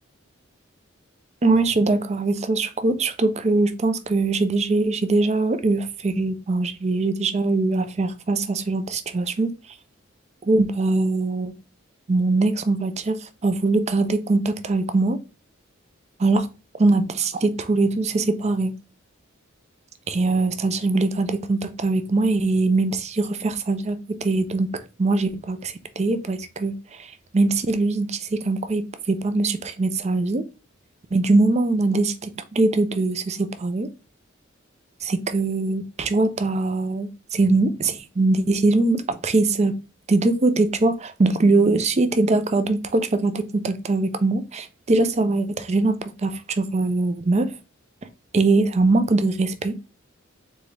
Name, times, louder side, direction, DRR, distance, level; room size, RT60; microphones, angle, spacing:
voice 1, 1.4-9.5 10.4-11.5 12.1-15.2 16.2-16.5 16.8-18.7 20.1-30.5 31.1-33.9 35.0-39.8 40.1-47.5 48.3-49.7, right 3 dB, 35° right, 0.5 m, -22 dB
4.0 x 3.5 x 3.3 m
head